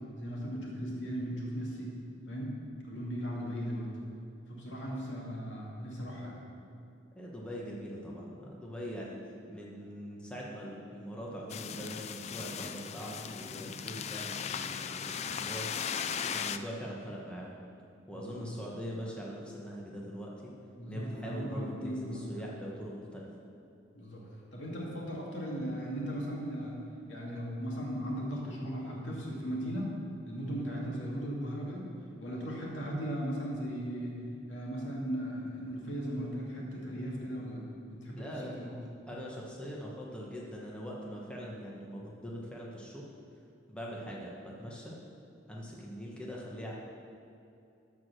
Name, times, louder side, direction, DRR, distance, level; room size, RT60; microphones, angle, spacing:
voice 1, 0.2-2.0 2.3-2.6 2.8-3.9 4.5-6.4 18.1-18.8 20.8-22.5 23.9-26.8 27.1-30.0 30.3-31.9 32.2-34.2 34.5-38.8, equal, 75° left, -3 dB, 2.2 m, -37 dB
voice 2, 7.2-9.2 9.5-15.7 16.3-17.6 18.1-20.5 20.9-23.3 38.1-38.6 39.1-43.1 43.7-44.9 45.5-46.7, equal, 5° left, -4 dB, 1.1 m, -42 dB
sound 1, 11.5-16.6, left 7 dB, 35° left, 0.3 m, -37 dB
13.0 x 4.7 x 6.2 m, 2.7 s
head